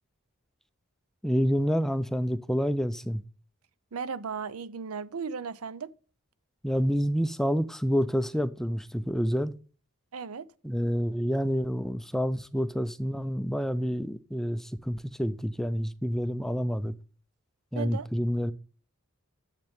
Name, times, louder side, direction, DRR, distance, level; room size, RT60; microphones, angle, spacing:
voice 1, 1.2-3.2 6.6-9.5 10.6-16.9 17.7-18.5, equal, ahead, 0.4 m, -28 dB
voice 2, 3.9-5.9 10.1-10.5 17.7-18.1, right 5 dB, 85° right, 0.6 m, -36 dB
10.5 x 7.6 x 3.5 m
head